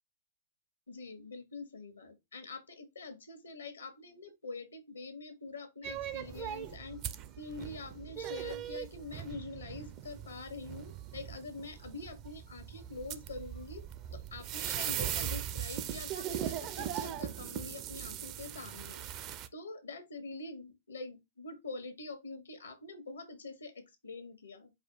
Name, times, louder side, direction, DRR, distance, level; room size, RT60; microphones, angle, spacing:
voice 1, 0.9-7.0 7.4-13.8 14.1-19.1 19.5-24.7, left 3 dB, 85° left, 1.2 m, -45 dB
sound 1, 5.8-19.5, right 11 dB, 40° right, 0.4 m, -39 dB
4.8 x 2.3 x 4.6 m
hypercardioid pair, 110°, 0 cm